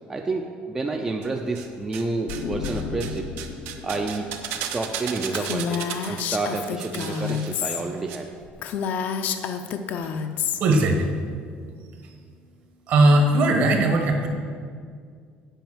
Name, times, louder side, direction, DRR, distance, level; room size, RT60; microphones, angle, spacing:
voice 1, 0.1-3.3 3.8-4.3 4.6-8.3, right 3 dB, 15° right, 3 dB, 0.4 m, -29 dB
sound 1, 1.2-2.0 2.3-8.2 8.4-8.5, right 9 dB, 80° right, 0.8 m, -35 dB
sound 2, 2.3-5.9, left 5 dB, 85° left, 0.9 m, -35 dB
Female speech woman speaking, 5.3-7.8 8.1-8.2 8.6-10.6, left 7 dB, 50° left, 0.5 m, -28 dB
voice 2, 10.6-11.1 12.9-14.3, right 2 dB, 50° right, 3 dB, 1.3 m, -18 dB
9.1 x 5.1 x 7.2 m, 2.1 s
cardioid pair, 175°, 4 cm